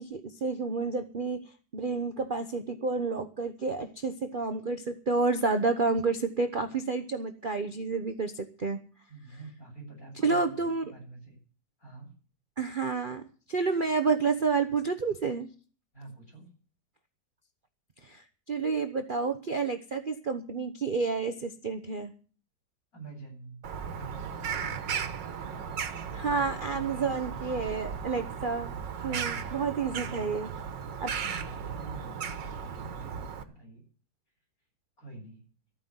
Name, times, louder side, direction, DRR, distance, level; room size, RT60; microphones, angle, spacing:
voice 1, 0.0-8.8 10.2-10.9 12.6-13.2 13.5-15.5 18.0-22.1 26.1-28.7 29.0-30.5 31.0-31.1, right 4 dB, 40° right, 7 dB, 0.9 m, -30 dB
voice 2, 9.1-11.4 11.8-12.1 15.9-16.5 22.9-25.1 26.7-27.2 28.9-30.5 31.2-33.8 35.0-35.4, right 3 dB, 50° left, -2 dB, 8.5 m, -46 dB
Bird vocalization bird call bird song, 23.6-33.4, right 7 dB, 85° right, 1.9 m, -36 dB
13.5 x 9.5 x 8.0 m, 0.40 s
omnidirectional pair, 1.9 m